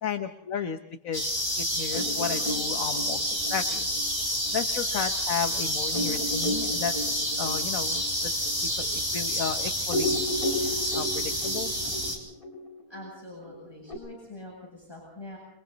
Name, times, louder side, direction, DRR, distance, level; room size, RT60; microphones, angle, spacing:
voice 1, 0.0-0.8 1.0-1.2 1.6-3.9 4.5-6.9 7.4-8.0 8.8-10.2 10.6-11.7, left 7 dB, 55° left, 7 dB, 1.4 m, -33 dB
sound 1, 1.1-12.2, equal, 15° right, 4.2 m, -29 dB
sound 2, 1.9-5.0 5.4-5.5 5.9-9.5 9.8-13.9, left 1 dB, 30° left, 4.9 m, -34 dB
voice 2, 12.9-15.4, left 2 dB, 15° left, -4 dB, 7.7 m, -44 dB
29.5 x 23.0 x 4.1 m, 0.79 s
omnidirectional pair, 1.8 m